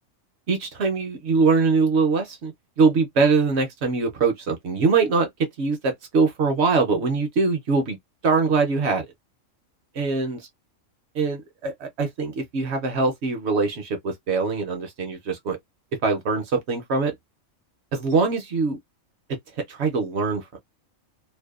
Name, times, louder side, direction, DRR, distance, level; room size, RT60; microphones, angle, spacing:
voice 1, 0.5-8.0 8.2-9.1 10.0-10.4 11.1-15.6 16.0-17.1 17.9-18.8 19.7-20.4, right 4 dB, 65° right, 0.8 m, -23 dB
2.6 x 2.1 x 2.3 m
omnidirectional pair, 1.4 m